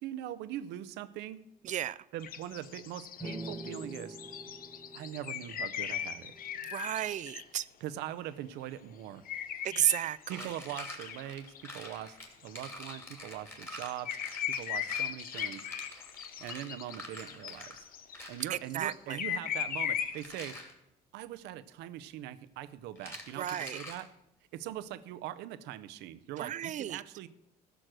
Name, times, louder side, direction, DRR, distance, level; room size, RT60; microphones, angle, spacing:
voice 1, 0.0-1.4 2.1-4.2 4.9-6.3 7.8-9.3 10.3-12.2 12.4-14.2 14.5-15.7 16.4-17.9 18.3-20.6 21.1-24.1 24.5-27.3, right 12 dB, 90° right, 14 dB, 0.7 m, -42 dB
voice 2, 1.6-2.0 6.7-7.7 9.6-10.5 18.5-19.2 23.4-23.8 26.4-27.0, right 11 dB, 45° right, 19 dB, 0.4 m, -33 dB
sound 1, 2.2-7.4 9.3-12.0 12.3-13.2 13.6-18.3 18.7-20.2, left 9 dB, 60° left, 0.9 m, -38 dB
sound 2, 3.2-6.8, right 1 dB, ahead, 1.8 m, -45 dB
sound 3, 10.2-17.8 18.1-18.5 20.0-20.7 23.0-24.1, left 1 dB, 15° left, 2.6 m, -47 dB
14.5 x 6.4 x 6.3 m, 0.84 s
cardioid pair, 110°, 17 cm